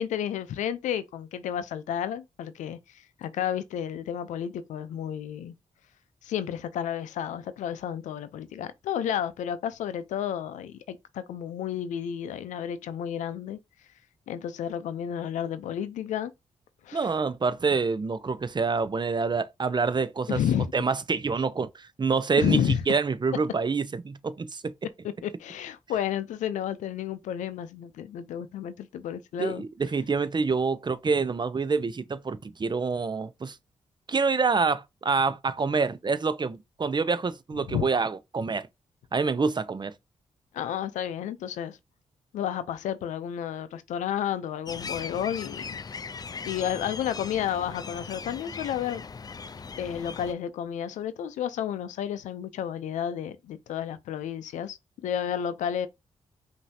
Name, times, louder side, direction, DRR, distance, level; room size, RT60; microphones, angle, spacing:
voice 1, 0.0-5.5 6.2-13.6 14.3-16.3 16.8-17.1 20.3-20.7 22.4-22.8 25.2-29.6 37.7-37.9 40.5-41.8 42.3-45.8 46.4-49.0 49.8-55.9, left 9 dB, 90° left, 0.5 m, -31 dB
voice 2, 16.9-20.4 20.7-24.7 29.4-33.6 34.1-38.7 39.1-39.9, right 4 dB, 35° right, 0.6 m, -27 dB
sound 1, 44.7-50.3, left 5 dB, 30° left, 0.4 m, -39 dB
5.5 x 2.8 x 2.7 m
supercardioid pair, 50°, 12 cm